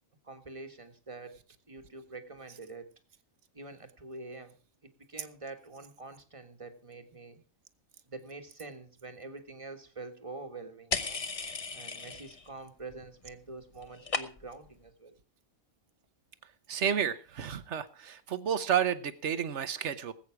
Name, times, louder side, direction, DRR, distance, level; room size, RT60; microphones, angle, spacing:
voice 1, 0.2-1.4 1.7-2.9 3.5-4.5 4.8-7.4 8.1-11.2 11.7-15.1, right 3 dB, 25° right, 6 dB, 1.5 m, -46 dB
sound 1, 10.9-12.5 12.8-13.3 13.6-14.7, left 4 dB, 30° left, 0.8 m, -36 dB
voice 2, 16.7-20.1, right 8 dB, 60° right, 13 dB, 1.3 m, -31 dB
19.0 x 8.4 x 4.7 m, 0.36 s
omnidirectional pair, 1.4 m